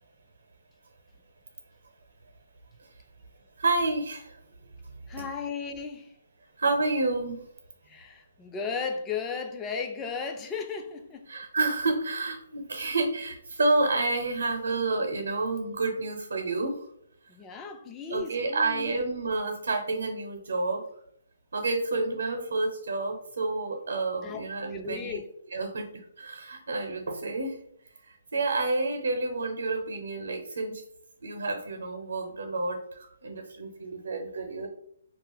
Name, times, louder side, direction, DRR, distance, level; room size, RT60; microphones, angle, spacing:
voice 1, 3.6-4.4 6.6-7.5 11.3-16.9 18.1-20.8 21.5-25.2 25.5-25.9 26.2-27.6 28.1-30.8 31.2-34.7, right 3 dB, 85° right, 0.7 m, -29 dB
voice 2, 5.1-6.2 7.9-11.5 17.3-19.0 24.2-25.3, left 5 dB, 15° left, 0.3 m, -35 dB
2.4 x 2.4 x 3.9 m
hypercardioid pair, 160°, 0 cm